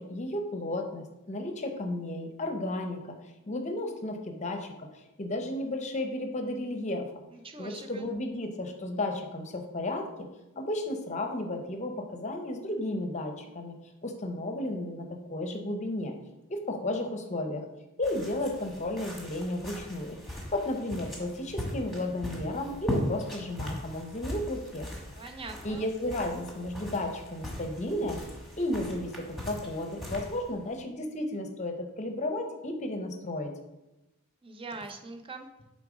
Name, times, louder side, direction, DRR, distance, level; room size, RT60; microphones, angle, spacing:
voice 1, 0.0-3.2 3.5-4.9 5.2-7.1 7.6-10.3 10.6-13.7 14.0-16.1 16.5-17.6 18.0-20.2 20.5-24.9 25.6-28.2 28.6-33.5, left 1 dB, 30° left, 5 dB, 0.7 m, -33 dB
voice 2, 7.3-8.1 25.2-25.8 34.4-35.5, right 3 dB, 25° right, 5 dB, 0.5 m, -42 dB
sound 1, 18.0-30.8, left 1 dB, ahead, 1.3 m, -39 dB
7.4 x 3.8 x 5.0 m, 0.99 s
head